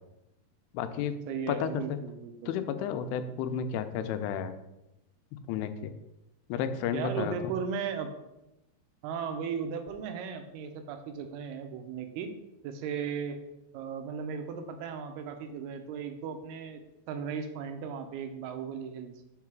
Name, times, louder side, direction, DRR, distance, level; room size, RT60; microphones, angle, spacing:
voice 1, 0.7-1.2 1.5-2.0 2.5-4.6 5.3-5.9 6.5-7.5, left 7 dB, 90° left, 9 dB, 2.6 m, -32 dB
voice 2, 1.3-2.6 6.9-8.1 9.0-12.3 12.6-13.4 13.7-16.8 17.1-19.1, right 6 dB, 90° right, 7 dB, 2.6 m, -36 dB
5.7 x 4.7 x 5.9 m, 0.91 s
omnidirectional pair, 4.6 m